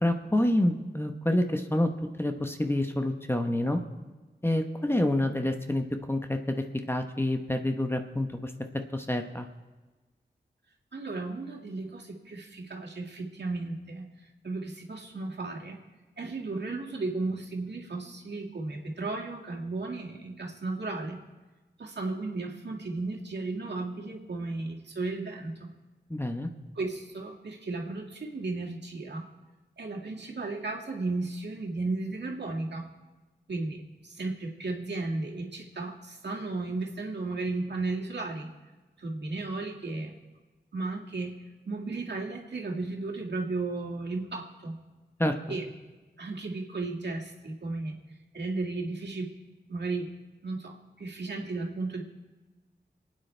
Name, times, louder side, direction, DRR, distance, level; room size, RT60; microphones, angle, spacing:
voice 1, 0.0-1.9 2.2-3.8 4.4-8.5 8.9-9.5 26.1-26.5 45.2-45.4, left 1 dB, 15° left, 5 dB, 1.0 m, -27 dB
voice 2, 10.9-14.1 14.4-15.8 16.2-21.2 21.8-25.7 26.8-29.3 29.8-32.9 33.5-38.5 39.0-40.1 40.7-41.4 41.7-44.7 45.5-45.7 46.2-48.0 48.3-49.3 49.7-50.1 50.4-52.0, right 3 dB, 75° right, -1 dB, 2.0 m, -34 dB
27.5 x 9.3 x 3.3 m, 1.2 s
wide cardioid pair, 65°, 18 cm